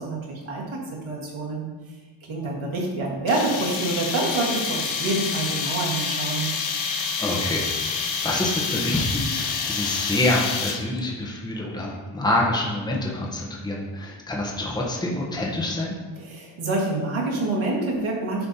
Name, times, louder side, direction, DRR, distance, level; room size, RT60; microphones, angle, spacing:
voice 1, 0.0-1.7 2.3-6.5 16.2-18.5, right 2 dB, 85° right, -3 dB, 1.7 m, -27 dB
sound 1, 3.3-11.0, left 5 dB, 90° left, 0.9 m, -28 dB
voice 2, 7.2-16.0, left 1 dB, 10° left, -2 dB, 0.9 m, -26 dB
9.7 x 5.2 x 2.8 m, 1.4 s
wide cardioid pair, 145°, 47 cm